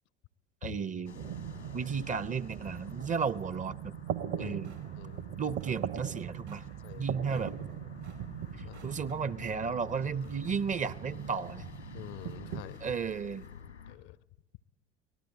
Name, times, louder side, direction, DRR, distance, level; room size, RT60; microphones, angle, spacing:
voice 1, 0.6-1.1 1.7-3.9 4.4-4.7 5.4-6.6 6.9-7.5 8.8-11.6 12.8-13.4, right 6 dB, 25° right, 19 dB, 0.8 m, -33 dB
sound 1, 1.0-14.0, left 7 dB, 85° left, 1.6 m, -51 dB
sound 2, 1.2-12.6, right 9 dB, 50° right, 1.3 m, -41 dB
sound 3, 4.6-13.6, right 7 dB, 75° right, 4.7 m, -62 dB
voice 2, 11.9-12.8 13.9-14.2, left 16 dB, 50° left, 22 dB, 0.7 m, -46 dB
24.5 x 18.5 x 8.7 m, 1.0 s
figure-of-eight pair, 65°, 33 cm